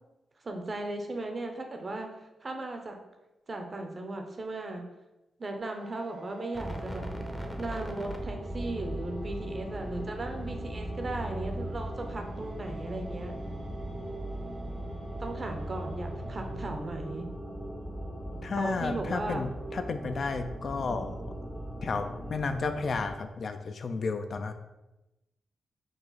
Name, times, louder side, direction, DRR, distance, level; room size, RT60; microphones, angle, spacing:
voice 1, 0.4-3.0 3.5-4.9 5.4-7.0 7.6-13.3 15.2-17.3 18.6-19.4 20.8-21.1, right 2 dB, 40° right, 4 dB, 0.6 m, -37 dB
sound 1, 5.6-16.5, right 1 dB, 70° right, 1.3 m, -48 dB
sound 2, 6.5-23.1, right 1 dB, 5° left, 0.6 m, -38 dB
voice 2, 18.4-21.2 21.8-24.5, left 4 dB, 55° left, 8 dB, 0.3 m, -32 dB
4.7 x 2.4 x 3.9 m, 1.0 s
cardioid pair, 100°, 0 cm